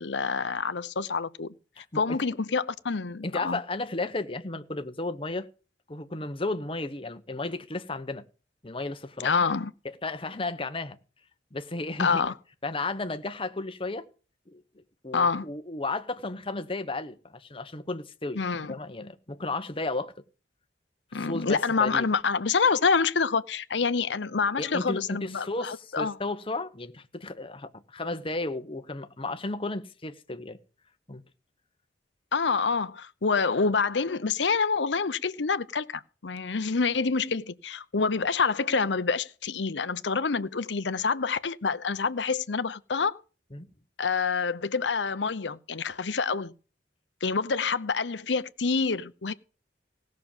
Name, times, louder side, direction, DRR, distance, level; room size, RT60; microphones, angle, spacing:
voice 1, 0.0-1.5 1.9-3.6 9.2-9.7 12.0-12.3 15.1-15.4 18.4-18.7 21.1-26.2 32.3-43.2 44.0-46.5 47.2-49.3, left 5 dB, 80° left, 0.8 m, -27 dB
voice 2, 1.8-2.2 3.2-5.5 5.9-8.2 8.6-9.4 9.8-11.0 11.5-12.2 12.6-14.0 14.5-14.6 15.0-18.4 18.7-20.1 21.1-22.1 24.6-30.6 31.1-31.2 43.5-43.7, left 2 dB, 30° left, 1.0 m, -33 dB
17.0 x 6.5 x 7.3 m
head